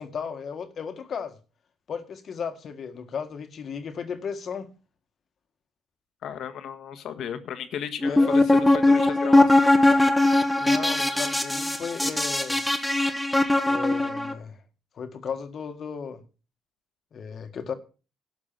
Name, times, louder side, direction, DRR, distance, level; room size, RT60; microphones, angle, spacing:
voice 1, 0.0-1.4 1.9-4.7 8.0-8.3 10.6-12.6 13.6-14.6 14.9-16.2 17.1-17.7, left 6 dB, 45° left, 1.7 m, -35 dB
voice 2, 6.2-9.9, left 9 dB, 65° left, 1.5 m, -35 dB
sound 1, 8.0-14.3, left 2 dB, 5° left, 1.3 m, -20 dB
12.0 x 6.0 x 7.6 m
cardioid pair, 120°, 0 cm